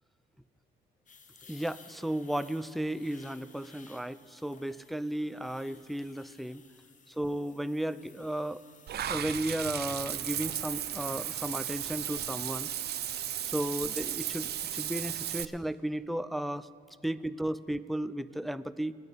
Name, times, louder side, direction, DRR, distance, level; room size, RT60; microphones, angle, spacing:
sound 1, 1.1-14.9, left 5 dB, 40° left, 0.9 m, -57 dB
voice 1, 1.5-6.6 7.1-8.6 9.0-12.7 13.4-16.7 17.0-19.0, right 1 dB, ahead, 13 dB, 0.4 m, -34 dB
Water / Bathtub (filling or washing), 8.9-15.4, right 11 dB, 55° right, 0.5 m, -35 dB
26.0 x 9.3 x 4.1 m, 2.7 s
cardioid pair, 90°, 20 cm